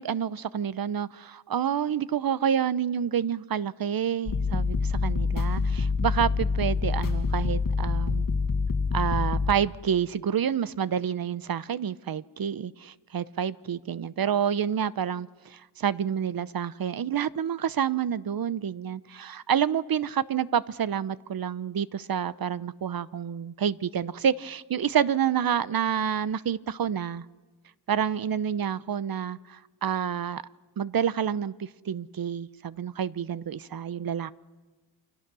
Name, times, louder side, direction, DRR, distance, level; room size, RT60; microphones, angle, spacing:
voice 1, 0.0-8.3 8.9-27.2 27.9-30.4 30.8-34.3, right 8 dB, 50° right, 16 dB, 0.8 m, -28 dB
sound 1, 4.3-9.5, left 4 dB, 45° left, 1.9 m, -26 dB
29.0 x 26.0 x 6.2 m, 1.3 s
cardioid pair, 85°, 47 cm